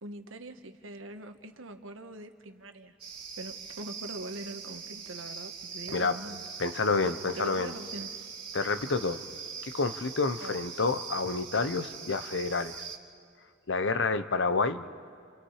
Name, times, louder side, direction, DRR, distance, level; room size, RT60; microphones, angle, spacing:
voice 1, 0.0-2.9 3.4-6.4 6.9-8.1 10.4-10.6, right 2 dB, 85° right, 7 dB, 1.3 m, -42 dB
sound 1, 3.0-13.0, right 6 dB, 30° right, 2.8 m, -42 dB
voice 2, 6.6-7.7 8.5-9.2 9.6-12.9 13.7-14.8, left 4 dB, 65° left, 10 dB, 0.9 m, -29 dB
29.5 x 29.0 x 4.9 m, 2.3 s
head